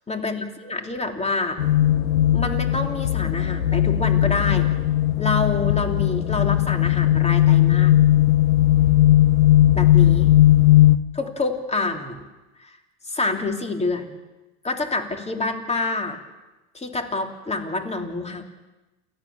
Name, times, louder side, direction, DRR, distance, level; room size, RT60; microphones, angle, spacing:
voice 1, 0.1-1.6 2.3-4.7 5.2-7.9 9.7-10.3 11.1-12.2 12.6-12.7 13.1-14.2 14.6-16.2 16.7-18.4, left 3 dB, 15° left, 4 dB, 3.5 m, -27 dB
sound 1, 1.6-11.0, left 13 dB, 85° left, 1.0 m, -17 dB
29.0 x 14.0 x 7.3 m, 1.1 s
hypercardioid pair, 80°, 40 cm